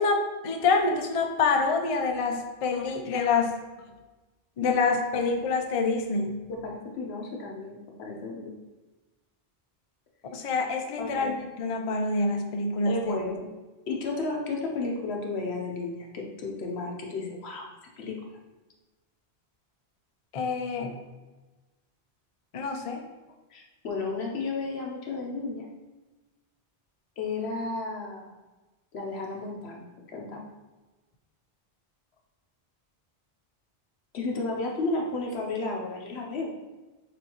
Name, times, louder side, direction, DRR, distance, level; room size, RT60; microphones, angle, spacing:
voice 1, 0.0-3.5 4.6-6.5 10.3-13.2 20.3-21.0 22.5-23.0, left 4 dB, 50° left, 4 dB, 0.4 m, -26 dB
voice 2, 6.5-8.5 11.0-11.3 12.8-13.5 13.9-17.7 18.0-18.2 23.5-25.7 27.2-28.3 28.9-30.4 34.1-36.5, left 3 dB, 80° left, 0 dB, 1.0 m, -33 dB
6.2 x 2.6 x 2.9 m, 1.2 s
omnidirectional pair, 1.1 m